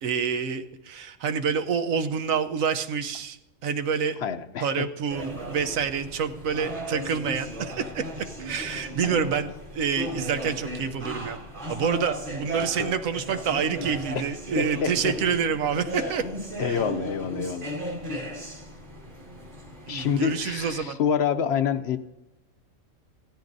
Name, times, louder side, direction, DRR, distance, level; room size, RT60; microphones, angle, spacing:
voice 1, 0.0-4.2 4.6-8.0 8.4-11.4 11.7-16.2 16.6-16.8 19.9-21.0, right 6 dB, 85° right, 1.2 m, -27 dB
voice 2, 4.2-4.9 9.0-9.2 12.6-12.9 14.6-15.1 16.0-16.1 16.6-17.9 19.9-22.0, left 7 dB, 65° left, 0.7 m, -28 dB
sound 1, 5.1-20.8, equal, 40° right, 2.0 m, -36 dB
16.0 x 13.0 x 2.6 m
omnidirectional pair, 1.4 m